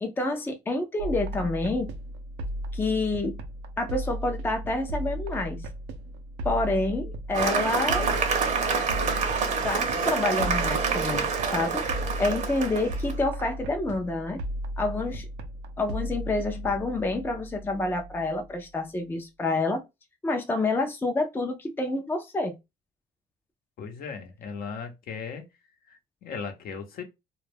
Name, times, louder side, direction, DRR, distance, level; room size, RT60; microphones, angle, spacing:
voice 1, 0.0-1.9 2.7-3.4 3.8-5.6 6.4-8.1 9.6-11.8 12.2-14.4 14.8-15.3 15.8-19.8 20.2-22.5, left 2 dB, 10° left, 0.4 m, -28 dB
sound 1, 1.0-18.6, right 1 dB, 85° right, 0.5 m, -35 dB
Cheering / Applause, 7.3-13.1, right 5 dB, 45° right, 0.7 m, -27 dB
voice 2, 23.8-25.4 25.9-27.0, left 5 dB, 60° left, 0.7 m, -37 dB
2.2 x 2.1 x 3.2 m
cardioid pair, 110°, 17 cm